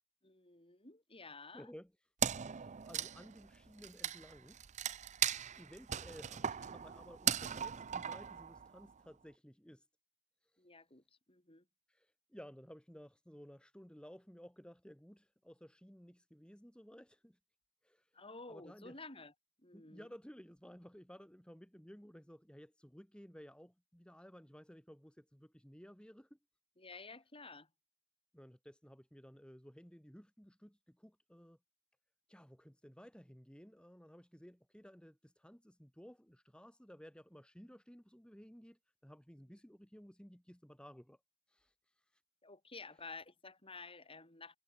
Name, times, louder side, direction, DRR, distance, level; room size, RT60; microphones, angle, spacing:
voice 1, 0.2-1.7 10.6-11.7 18.1-19.3 19.6-20.1 26.8-27.7 42.4-44.6, left 3 dB, 25° left, 7.6 m, -52 dB
voice 2, 1.5-1.9 2.5-4.6 5.2-9.9 10.4-10.6 11.9-17.4 17.8-18.2 18.5-19.0 19.7-26.4 28.3-31.6 32.3-41.2 41.5-42.2, equal, 5° left, 2.4 m, -56 dB
Wood, 2.2-8.9, right 9 dB, 35° right, 0.5 m, -38 dB
head